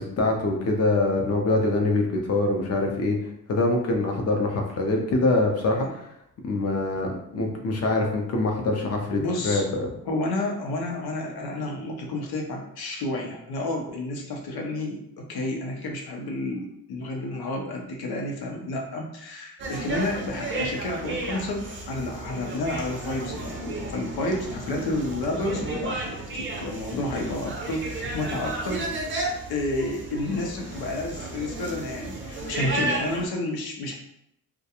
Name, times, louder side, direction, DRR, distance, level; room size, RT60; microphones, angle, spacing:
voice 1, 0.0-3.2 3.5-6.1 6.4-9.9, left 2 dB, 45° left, 2 dB, 0.5 m, -24 dB
voice 2, 9.1-9.6 10.1-29.0 29.5-33.9, left 2 dB, 85° left, 1 dB, 0.6 m, -30 dB
sound 1, 19.6-33.3, right 2 dB, 35° right, 0.4 m, -33 dB
2.3 x 2.1 x 2.8 m, 0.74 s
wide cardioid pair, 160°, 36 cm